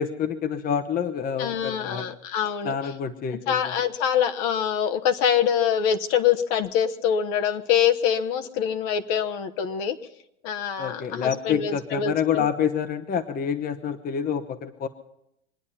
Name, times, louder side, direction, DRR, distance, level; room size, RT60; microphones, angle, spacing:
voice 1, 0.0-2.0 2.6-3.7 10.8-14.9, left 7 dB, 25° left, 11 dB, 0.9 m, -27 dB
voice 2, 1.4-2.9 3.5-10.0 10.4-12.5, left 8 dB, 50° left, 7 dB, 1.2 m, -25 dB
24.5 x 9.7 x 5.7 m, 0.81 s
hypercardioid pair, 95°, 35 cm